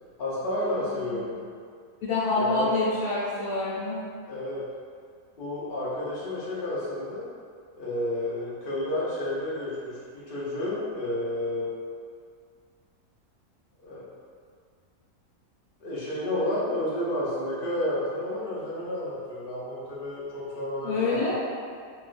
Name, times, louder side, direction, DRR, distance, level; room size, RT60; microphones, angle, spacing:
voice 1, 0.2-1.4 2.4-2.7 4.3-4.6 5.4-7.3 7.8-11.7 13.8-14.1 15.8-21.2, left 1 dB, 50° left, -8 dB, 0.7 m, -31 dB
voice 2, 2.0-4.0 20.8-21.3, left 3 dB, 80° left, -10 dB, 1.2 m, -27 dB
3.0 x 2.3 x 2.4 m, 2.1 s
omnidirectional pair, 1.5 m